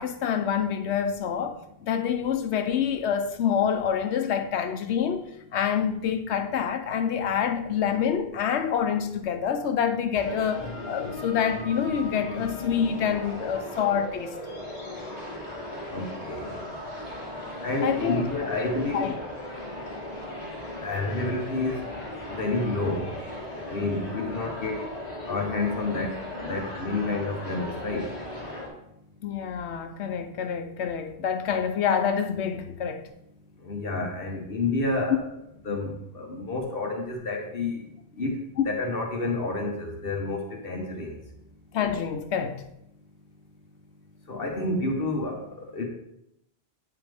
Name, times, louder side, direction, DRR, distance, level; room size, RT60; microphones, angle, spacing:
voice 1, 0.0-1.6 1.8-14.4 17.8-18.2 18.9-19.1 29.2-33.1 35.1-35.2 41.7-42.6, left 8 dB, 85° left, 1.0 m, -27 dB
sound 1, 10.1-28.7, left 1 dB, 35° left, 2.2 m, -37 dB
voice 2, 15.9-16.6 17.6-19.1 20.8-21.8 22.4-23.1 23.7-24.8 25.3-28.0 33.7-35.2 35.6-37.7 38.2-38.3 38.6-41.1 44.3-45.4 45.7-45.9, left 2 dB, 60° left, 1.3 m, -29 dB
9.0 x 5.7 x 3.4 m
omnidirectional pair, 1.1 m